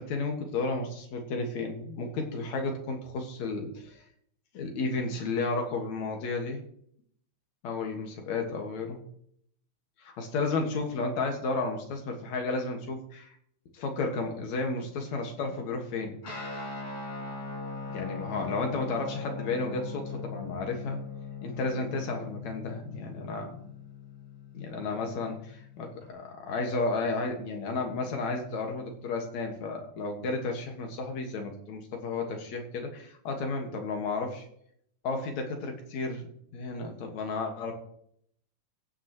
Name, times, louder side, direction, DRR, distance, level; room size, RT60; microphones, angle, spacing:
voice 1, 0.0-4.0 4.5-6.6 7.6-9.0 10.2-13.4 13.7-16.2 17.9-21.0 21.4-23.7 24.5-34.5 35.0-36.3 36.5-37.7, left 3 dB, 70° left, 3 dB, 2.8 m, -32 dB
Guitar, 16.2-26.1, left 4 dB, 50° left, 4.3 m, -40 dB
15.5 x 9.4 x 3.0 m, 0.66 s
omnidirectional pair, 3.5 m